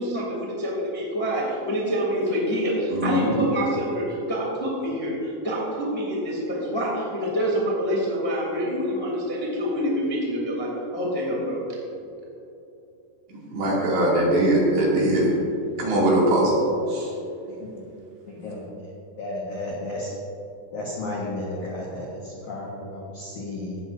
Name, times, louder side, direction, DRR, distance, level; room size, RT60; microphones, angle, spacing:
voice 1, 0.0-11.6, equal, 10° left, -5 dB, 1.1 m, -26 dB
voice 2, 2.9-3.3 13.5-15.3 15.8-16.5 16.9-17.1, right 1 dB, 60° right, -5 dB, 4.5 m, -21 dB
voice 3, 18.3-18.9 19.2-20.1 20.7-23.8, left 2 dB, 65° left, -4 dB, 1.9 m, -33 dB
17.0 x 13.5 x 2.7 m, 2.8 s
omnidirectional pair, 5.8 m